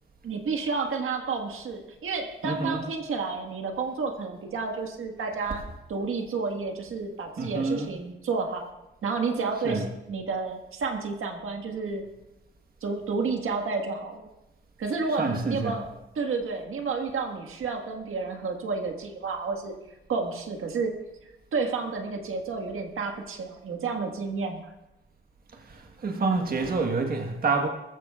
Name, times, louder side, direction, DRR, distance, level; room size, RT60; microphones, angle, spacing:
voice 1, 0.2-5.6 5.9-8.7 9.0-12.0 12.8-14.3 14.8-15.9 16.2-19.7 20.1-20.9 21.5-24.7, right 4 dB, 80° right, 3 dB, 1.6 m, -30 dB
voice 2, 2.4-2.8 7.4-7.9 9.7-9.9 15.2-15.8 25.7-27.7, right 4 dB, 45° right, 2 dB, 1.4 m, -27 dB
21.0 x 14.5 x 2.4 m, 0.95 s
wide cardioid pair, 170°, 21 cm